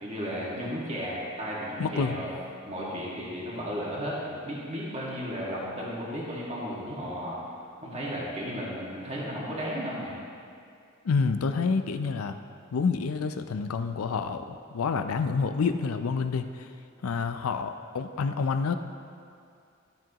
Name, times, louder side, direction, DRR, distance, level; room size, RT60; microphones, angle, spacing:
voice 1, 0.0-2.3 2.7-7.4 7.8-10.2, equal, 30° right, -6 dB, 1.8 m, -34 dB
voice 2, 1.8-2.2 11.0-12.4 12.7-16.7 17.0-18.7, left 5 dB, 90° left, 8 dB, 0.5 m, -28 dB
12.5 x 7.5 x 3.0 m, 2.4 s
head